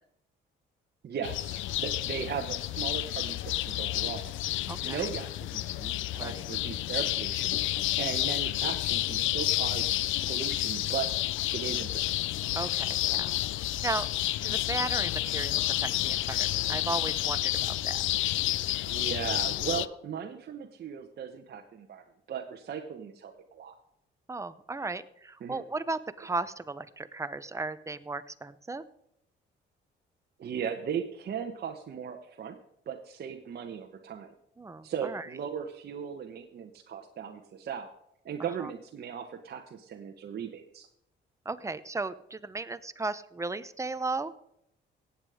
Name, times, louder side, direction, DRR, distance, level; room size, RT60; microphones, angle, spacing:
voice 1, 1.0-4.3 4.8-7.6 8.0-9.9 10.2-11.1 11.5-12.0 18.9-23.8 25.4-25.6 30.4-32.6 32.9-34.3 34.8-37.9 38.2-40.9, right 7 dB, 55° right, 3 dB, 1.1 m, -37 dB
sound 1, 1.2-19.9, left 15 dB, 80° left, 0.5 m, -30 dB
voice 2, 4.7-5.1 6.2-6.4 12.5-13.3 13.8-14.1 14.4-18.0 24.3-28.8 34.6-35.3 38.6-38.7 41.5-44.3, right 3 dB, 15° right, 13 dB, 0.8 m, -35 dB
17.5 x 8.3 x 4.9 m, 0.77 s
cardioid pair, 90°, 20 cm